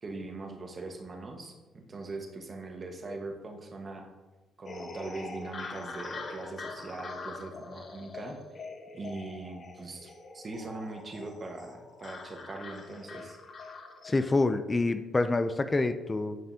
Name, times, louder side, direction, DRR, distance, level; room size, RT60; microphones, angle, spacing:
voice 1, 0.0-4.1 4.6-8.6 8.9-13.4, right 3 dB, 40° right, 3 dB, 1.3 m, -41 dB
sound 1, 4.7-14.3, left 3 dB, 45° left, 1.0 m, -43 dB
voice 2, 14.0-16.4, left 2 dB, 30° left, 10 dB, 0.4 m, -27 dB
9.1 x 5.4 x 2.7 m, 1.2 s
supercardioid pair, 60°, 0 cm